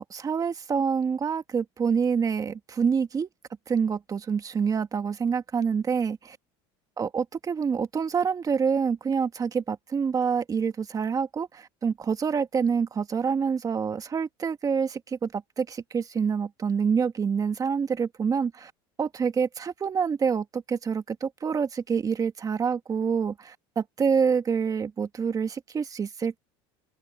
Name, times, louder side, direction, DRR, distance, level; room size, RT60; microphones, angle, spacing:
voice 1, 0.0-3.3 3.7-6.4 7.0-18.7 19.0-26.4, right 6 dB, 25° right, 1.8 m, -27 dB
open air
supercardioid pair, 115°, 13 cm